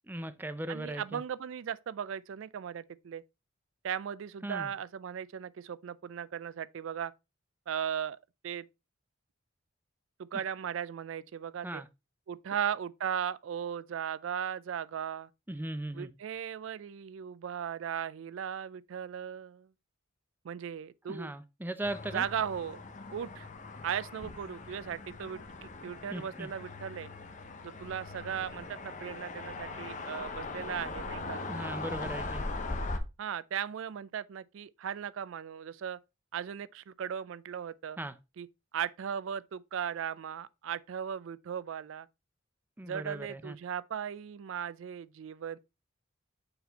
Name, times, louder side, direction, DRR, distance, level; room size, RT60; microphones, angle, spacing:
voice 1, 0.1-1.2 4.4-4.7 11.6-11.9 15.5-16.1 21.1-22.2 26.1-26.5 31.5-32.4 38.0-38.2 42.8-43.6, right 1 dB, 10° right, 0.4 m, -38 dB
voice 2, 0.7-3.2 3.8-7.1 7.7-8.2 8.4-8.7 10.2-11.8 12.3-15.3 15.9-19.7 20.4-21.3 22.1-22.8 23.1-23.5 23.8-27.1 27.6-31.4 33.2-36.0 36.3-38.0 38.4-38.5 38.7-42.1 42.8-45.6, right 8 dB, 70° right, 0.4 m, -37 dB
sound 1, 21.8-33.0, left 3 dB, 40° left, 0.8 m, -40 dB
6.8 x 4.3 x 4.0 m
head